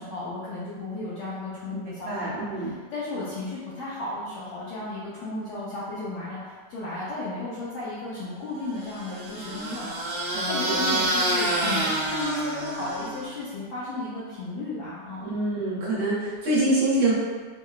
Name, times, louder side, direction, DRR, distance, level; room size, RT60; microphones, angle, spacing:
voice 1, 0.0-10.1 10.4-15.3, left 2 dB, 85° left, -9 dB, 1.3 m, -34 dB
voice 2, 2.1-2.7 10.3-10.8 15.2-17.1, right 2 dB, 60° right, -10 dB, 1.7 m, -25 dB
sound 1, 8.8-13.3, right 1 dB, 75° right, 1.3 m, -27 dB
5.4 x 2.2 x 2.3 m, 1.5 s
omnidirectional pair, 3.3 m